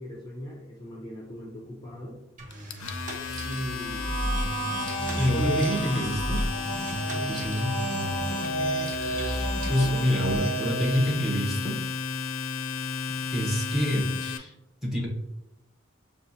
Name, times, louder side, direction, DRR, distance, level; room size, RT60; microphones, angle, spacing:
voice 1, 0.0-2.2 3.4-4.1 5.4-5.7 6.0-6.2 9.7-10.1, left 1 dB, 20° left, -4 dB, 0.5 m, -37 dB
sound 1, 2.4-10.4, equal, 40° right, 0.6 m, -34 dB
Domestic sounds home sounds, 2.5-14.4, left 6 dB, 75° left, 0.4 m, -34 dB
sound 2, 3.9-11.3, right 2 dB, 85° right, 1.1 m, -32 dB
voice 2, 5.2-6.4 7.2-7.8 9.3-11.8 13.3-14.5 14.8-15.1, equal, ahead, -2 dB, 0.9 m, -27 dB
6.3 x 2.4 x 2.7 m, 0.88 s
head